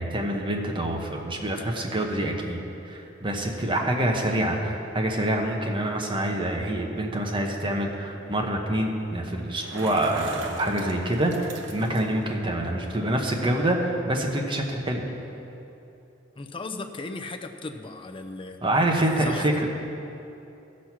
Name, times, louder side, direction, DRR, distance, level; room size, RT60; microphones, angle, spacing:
voice 1, 0.0-2.6 2.9-15.0 18.6-19.7, right 1 dB, 25° right, 1 dB, 1.1 m, -26 dB
Bicycle, 9.4-12.3, right 2 dB, 75° right, 1.0 m, -40 dB
voice 2, 16.4-18.6 19.2-19.7, left 3 dB, 25° left, 7 dB, 0.6 m, -36 dB
14.5 x 6.3 x 5.9 m, 2.9 s
head